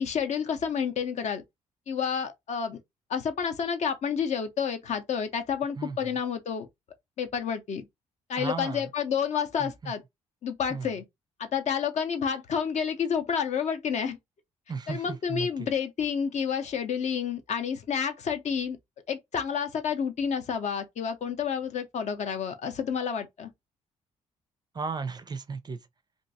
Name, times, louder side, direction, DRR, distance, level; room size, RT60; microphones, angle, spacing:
voice 1, 0.0-1.4 1.9-2.8 3.1-6.7 7.2-7.9 8.3-10.0 10.4-11.0 11.4-14.2 14.9-18.8 19.1-23.5, left 7 dB, 40° left, 0.6 m, -29 dB
voice 2, 8.4-8.9 9.6-9.9 10.7-10.9 14.7-15.7 24.7-25.8, right 5 dB, 25° right, 0.5 m, -35 dB
2.9 x 2.5 x 2.6 m
figure-of-eight pair, 45°, 17 cm